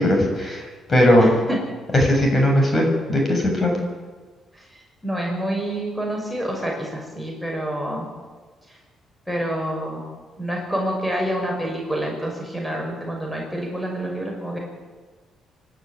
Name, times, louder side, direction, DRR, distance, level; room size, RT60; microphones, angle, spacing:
voice 1, 0.0-1.3 1.9-3.7, left 1 dB, 30° left, 1 dB, 7.2 m, -18 dB
voice 2, 1.2-1.6 4.5-8.1 9.3-10.0 10.4-14.6, right 1 dB, ahead, -1 dB, 6.0 m, -27 dB
25.5 x 12.0 x 8.6 m, 1.4 s
cardioid pair, 90°, 0 cm